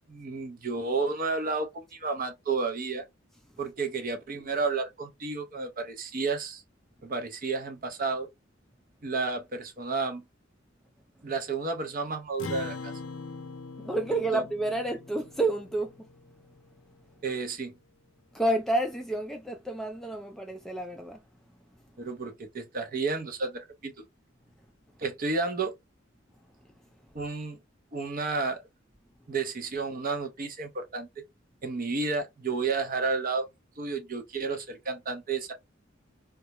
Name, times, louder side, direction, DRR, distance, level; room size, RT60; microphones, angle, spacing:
voice 1, 0.1-3.0 3.6-6.6 7.0-8.3 9.0-10.2 11.2-12.9 14.1-14.4 17.2-17.7 22.0-23.9 25.0-25.7 27.1-27.6 27.9-28.6 29.3-31.2 31.6-33.5 33.8-35.5, right 4 dB, 45° right, 0.6 m, -31 dB
Acoustic guitar, 12.4-17.1, left 4 dB, 70° left, 0.5 m, -42 dB
voice 2, 13.8-16.1 18.3-21.2, right 2 dB, ahead, 0.3 m, -29 dB
2.3 x 2.0 x 2.8 m
head